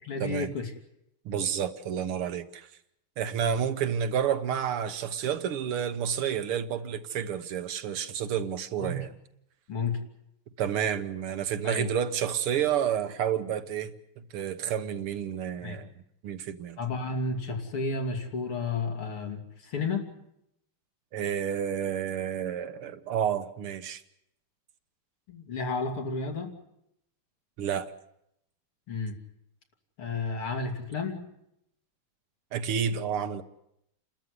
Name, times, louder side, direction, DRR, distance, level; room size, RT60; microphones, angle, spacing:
voice 1, 0.0-0.7 3.4-3.6 8.8-9.1 9.7-10.0 11.6-11.9 15.6-15.8 16.8-20.1 25.3-26.6 28.9-29.2 30.0-31.2, left 3 dB, 85° left, 3.7 m, -32 dB
voice 2, 1.3-2.7 3.2-9.1 10.6-15.9 16.2-16.8 21.1-24.0 27.6-27.9 32.5-33.4, right 8 dB, 85° right, 2.1 m, -30 dB
29.0 x 13.0 x 9.8 m
omnidirectional pair, 2.3 m